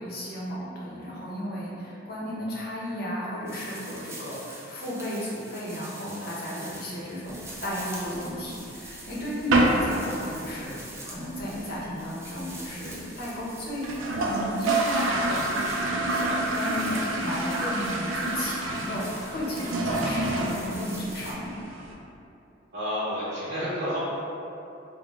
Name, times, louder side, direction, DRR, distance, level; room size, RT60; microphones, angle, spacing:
voice 1, 0.0-21.5, equal, 50° left, -6 dB, 0.8 m, -34 dB
sound 1, 3.5-21.3, right 2 dB, 15° right, 0.4 m, -45 dB
sound 2, 7.3-8.3 8.7-8.8 9.1-9.2 9.5-9.9 10.2-10.3 10.6-10.7 11.0-11.4 11.8-11.9 12.0-12.1 12.4-12.5 13.0-13.1 13.4-13.5 13.7-21.9, right 2 dB, 80° right, 0.4 m, -28 dB
voice 2, 22.7-24.0, equal, 55° right, -12 dB, 0.8 m, -30 dB
3.5 x 2.1 x 3.5 m, 2.7 s
head